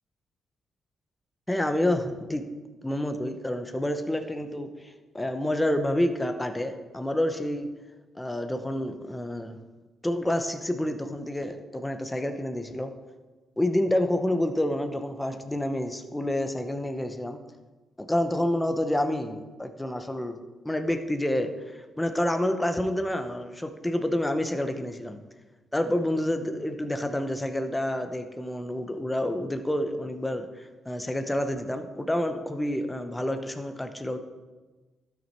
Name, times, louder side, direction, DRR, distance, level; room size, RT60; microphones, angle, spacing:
voice 1, 1.5-2.4 2.8-7.7 8.2-9.6 10.0-12.9 13.6-17.4 18.0-20.4 20.6-25.2 25.7-30.5 30.9-34.2, left 1 dB, 10° left, 7 dB, 0.9 m, -28 dB
12.0 x 6.1 x 4.3 m, 1.3 s
cardioid pair, 75°, 0 cm